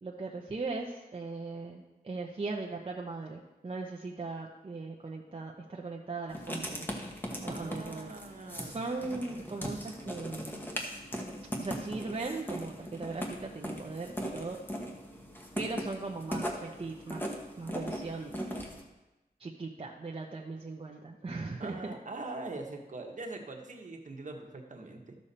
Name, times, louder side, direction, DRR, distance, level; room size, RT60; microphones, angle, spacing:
voice 1, 0.0-6.9 7.4-8.1 8.6-10.7 11.6-14.6 15.6-17.3 17.6-18.4 19.4-21.9, right 3 dB, 35° right, -1 dB, 0.9 m, -39 dB
Writing, 6.3-18.8, equal, 10° left, 1.3 m, -39 dB
voice 2, 7.5-8.8 21.6-25.2, right 3 dB, 50° right, 2 dB, 1.4 m, -42 dB
13.0 x 6.8 x 4.3 m, 1.0 s
wide cardioid pair, 120°, 16 cm